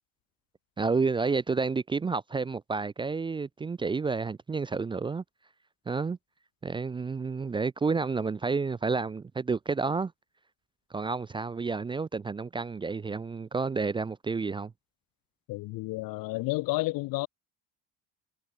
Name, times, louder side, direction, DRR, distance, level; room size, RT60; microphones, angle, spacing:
voice 1, 0.8-5.2 5.9-6.2 6.6-10.1 10.9-14.7, right 4 dB, 15° right, 0.6 m, -30 dB
voice 2, 15.5-17.3, left 21 dB, 65° left, 1.2 m, -31 dB
cardioid pair, 175°, 36 cm